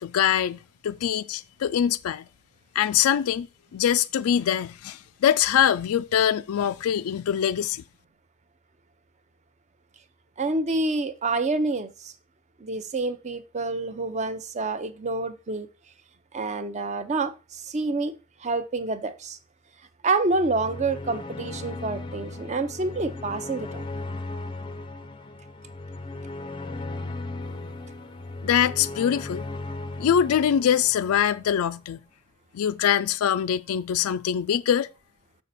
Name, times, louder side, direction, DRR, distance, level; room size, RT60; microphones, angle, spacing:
voice 1, 0.0-2.3 2.8-7.8 28.4-29.4 30.0-32.0 32.5-34.9, left 9 dB, 80° left, 0.3 m, -23 dB
voice 2, 10.4-12.1 12.6-15.7 16.3-18.1 18.4-19.4 20.0-23.8, right 3 dB, 30° right, 0.5 m, -28 dB
sound 1, 20.3-31.6, left 2 dB, 20° left, 0.5 m, -37 dB
6.7 x 5.5 x 4.1 m
head